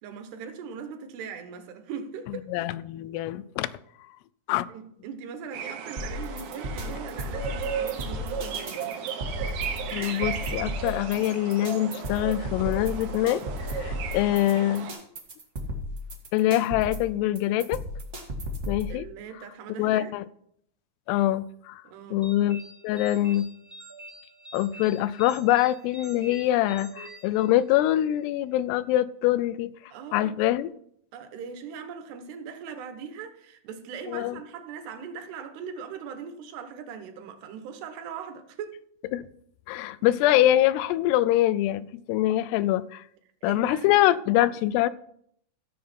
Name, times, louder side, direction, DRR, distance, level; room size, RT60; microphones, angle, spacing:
voice 1, 0.0-2.5 4.7-9.0 18.9-20.1 21.8-22.2 29.9-30.5 31.1-38.8 43.4-44.2, right 6 dB, 85° right, 3.3 m, -40 dB
voice 2, 2.5-3.7 4.5-4.7 9.9-13.5 13.8-14.9 16.3-17.8 18.7-19.1 19.7-20.3 21.1-21.8 22.1-23.5 24.5-29.7 30.1-30.7 34.1-34.4 39.1-39.3 39.7-43.0 43.4-44.9, left 14 dB, 85° left, 2.6 m, -24 dB
sound 1, 5.5-14.9, right 7 dB, 70° right, 2.8 m, -35 dB
sound 2, 6.0-18.9, equal, 50° right, 0.8 m, -34 dB
sound 3, 22.2-28.0, right 2 dB, 15° right, 0.6 m, -46 dB
15.0 x 7.5 x 4.4 m
omnidirectional pair, 4.7 m